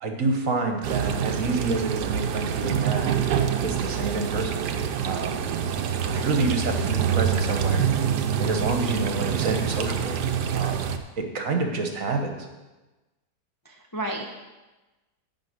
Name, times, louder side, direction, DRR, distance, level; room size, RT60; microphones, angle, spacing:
voice 1, 0.0-4.6 5.0-5.4 6.2-8.1 8.4-10.2 10.5-10.9 11.2-12.5, right 3 dB, 55° right, 4 dB, 1.5 m, -28 dB
sound 1, 0.8-11.0, right 8 dB, 80° right, 1.3 m, -26 dB
voice 2, 6.0-6.4 13.6-14.3, right 1 dB, 20° left, 1 dB, 0.5 m, -33 dB
11.0 x 4.9 x 8.1 m, 1.1 s
omnidirectional pair, 1.8 m